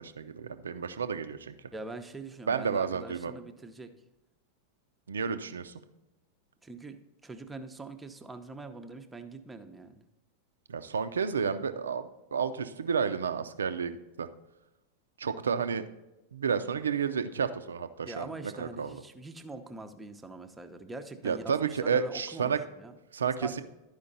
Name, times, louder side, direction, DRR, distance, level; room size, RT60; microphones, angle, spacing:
voice 1, 0.0-1.6 2.5-3.3 5.1-5.8 10.7-14.3 15.2-15.8 16.3-19.0 21.2-22.6 23.1-23.6, right 6 dB, 70° right, 10 dB, 0.5 m, -31 dB
voice 2, 1.7-3.9 6.6-10.0 18.0-22.9 23.4-23.6, right 2 dB, 10° right, 7 dB, 0.7 m, -43 dB
12.0 x 5.1 x 4.0 m, 0.97 s
figure-of-eight pair, 90°, 0 cm